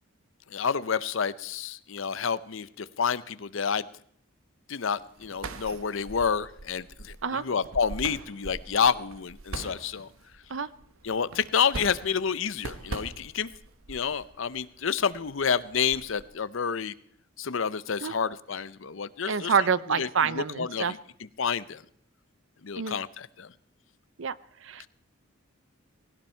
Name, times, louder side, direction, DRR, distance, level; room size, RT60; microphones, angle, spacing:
voice 1, 0.5-3.8 4.7-10.1 11.0-13.5 13.9-16.9 17.4-19.5 20.0-21.0 21.4-21.8 22.6-23.5 24.8-24.9, left 6 dB, 65° left, 17 dB, 0.6 m, -29 dB
sound 1, 5.0-16.3, right 3 dB, 80° right, 1.1 m, -42 dB
voice 2, 19.3-20.9 22.8-23.0 24.2-24.4 24.6-24.9, right 6 dB, 65° right, 17 dB, 0.6 m, -27 dB
19.0 x 17.0 x 4.5 m, 0.65 s
head